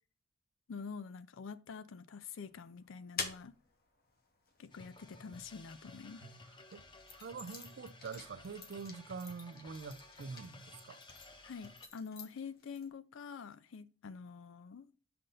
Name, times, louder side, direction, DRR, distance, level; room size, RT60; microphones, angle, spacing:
voice 1, 0.7-3.6 4.6-6.3 11.4-14.9, left 5 dB, 70° left, 0.4 m, -47 dB
sound 1, 2.4-6.0 6.6-12.9, left 4 dB, 50° left, 1.1 m, -49 dB
sound 2, 4.7-11.9, left 2 dB, 25° left, 0.6 m, -56 dB
voice 2, 7.2-11.0, right 5 dB, 55° right, 0.4 m, -45 dB
6.5 x 5.8 x 2.6 m
head